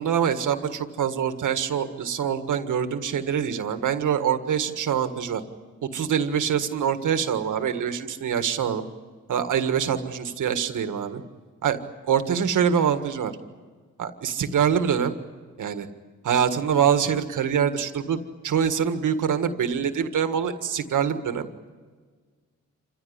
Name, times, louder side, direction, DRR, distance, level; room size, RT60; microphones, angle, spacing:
voice 1, 0.0-5.4 5.9-8.8 9.3-11.2 11.6-11.8 12.1-13.3 14.0-15.1 15.6-15.9 16.2-18.2 18.4-21.5, right 8 dB, 90° right, 8 dB, 1.7 m, -24 dB
27.5 x 15.5 x 9.8 m, 1.5 s
cardioid pair, 80°, 30 cm